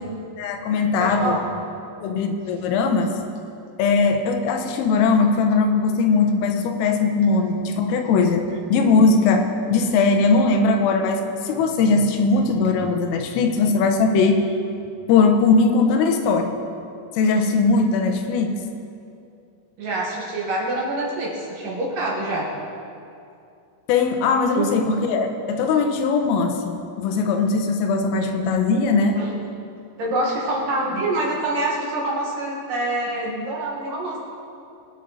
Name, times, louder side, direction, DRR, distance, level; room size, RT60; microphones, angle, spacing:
voice 1, 0.4-1.4 2.0-3.2 3.8-8.4 8.7-14.5 15.1-16.6 17.2-18.6 23.9-29.2, left 4 dB, 85° left, 5 dB, 3.7 m, -20 dB
voice 2, 1.0-1.4 19.8-22.5 24.6-24.7 29.2-29.3 30.0-34.2, right 2 dB, 55° right, -3 dB, 2.7 m, -25 dB
23.5 x 9.1 x 4.1 m, 2.6 s
omnidirectional pair, 5.8 m